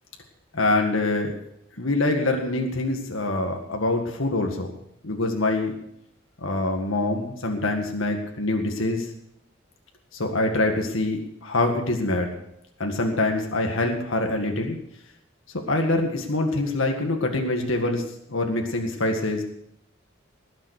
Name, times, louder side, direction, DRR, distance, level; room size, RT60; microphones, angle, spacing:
voice 1, 0.5-1.3 1.8-4.7 5.0-5.8 6.4-9.1 10.1-12.3 12.8-14.8 15.7-18.0 18.3-19.4, left 2 dB, 80° left, 3 dB, 1.9 m, -25 dB
19.5 x 7.3 x 6.6 m, 0.76 s
head